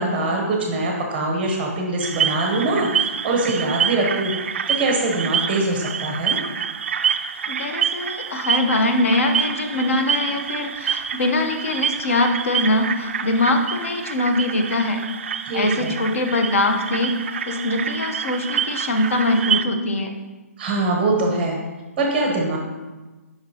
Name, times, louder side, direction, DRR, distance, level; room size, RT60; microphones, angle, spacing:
voice 1, 0.0-2.9 3.2-4.3 4.7-6.4 15.5-15.9 20.6-21.6 22.0-22.6, right 2 dB, 10° right, 0 dB, 0.7 m, -23 dB
sound 1, 2.0-19.6, right 8 dB, 50° right, 0.3 m, -27 dB
voice 2, 7.5-15.0 15.5-17.1 17.5-20.1, left 2 dB, 55° left, 5 dB, 0.8 m, -22 dB
7.7 x 5.3 x 2.8 m, 1.2 s
hypercardioid pair, 165°, 8 cm